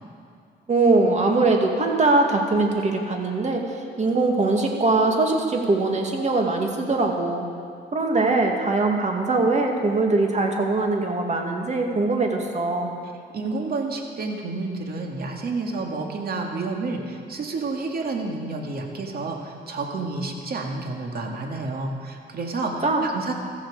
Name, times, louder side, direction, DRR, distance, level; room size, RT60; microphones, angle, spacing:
voice 1, 0.7-3.6 4.0-7.5 7.9-12.9 22.8-23.0, right 3 dB, 35° right, 2 dB, 2.3 m, -21 dB
voice 2, 13.3-23.3, right 3 dB, 50° right, 2 dB, 2.2 m, -30 dB
15.5 x 14.0 x 5.0 m, 2.3 s
cardioid pair, 90°, 20 cm